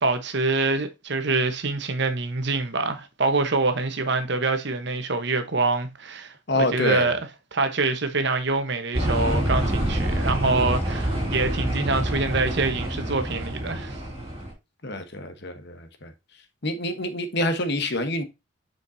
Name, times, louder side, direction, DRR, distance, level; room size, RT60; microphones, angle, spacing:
voice 1, 0.0-7.2 7.5-14.0, right 3 dB, 55° right, 1.1 m, -25 dB
voice 2, 6.5-7.1 14.8-16.1 16.6-18.2, left 1 dB, 55° left, 1.1 m, -27 dB
sound 1, 8.9-14.5, right 1 dB, 25° right, 4.3 m, -27 dB
7.1 x 5.2 x 2.7 m
head